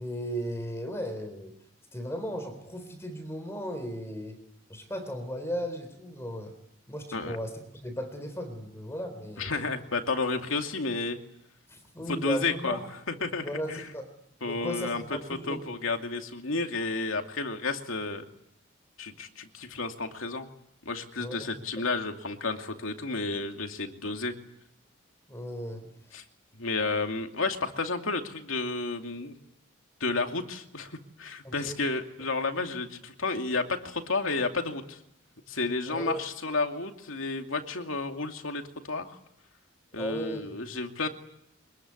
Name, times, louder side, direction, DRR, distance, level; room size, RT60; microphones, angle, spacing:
voice 1, 0.0-1.5 1.9-4.4 4.7-6.5 6.9-7.5 7.8-9.5 11.7-12.8 13.4-14.1 14.4-15.8 21.2-21.5 25.3-25.8 31.4-31.8 35.9-36.2 40.0-40.8, equal, 15° left, 7 dB, 3.9 m, -36 dB
voice 2, 9.4-11.2 12.1-12.8 13.1-13.9 14.4-15.0 15.3-18.3 19.0-20.5 20.8-24.4 26.1-26.2 26.6-29.4 30.0-35.0 35.5-39.2 39.9-41.1, left 3 dB, 80° left, 4 dB, 2.6 m, -31 dB
24.5 x 22.0 x 9.7 m, 0.79 s
head